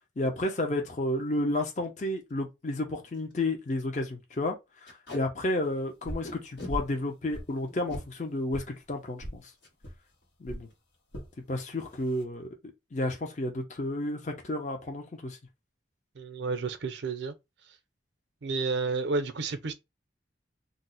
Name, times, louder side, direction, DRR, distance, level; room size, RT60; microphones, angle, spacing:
voice 1, 0.2-4.6 4.8-9.4 10.4-10.7 11.5-12.5 12.9-15.4, left 1 dB, 40° left, 0.6 m, -31 dB
Packing tape duct tape, 1.2-1.4 1.8-1.9 2.2-2.3 2.8-2.9 3.1-3.3 3.7-3.8 4.8-5.2 6.2-6.7 7.7-8.0 9.6-9.7 10.1-10.3 10.5-10.9, left 2 dB, 70° left, 1.4 m, -42 dB
sound 1, 6.0-6.3 6.7-7.0 7.3-8.1 8.5-8.7 9.2-9.4 9.8-10.0 10.4-10.6 11.1-11.3 11.9-12.2, equal, 85° left, 1.1 m, -38 dB
voice 2, 16.1-17.3 18.4-19.7, right 4 dB, 70° right, 0.5 m, -31 dB
2.6 x 2.0 x 3.9 m
head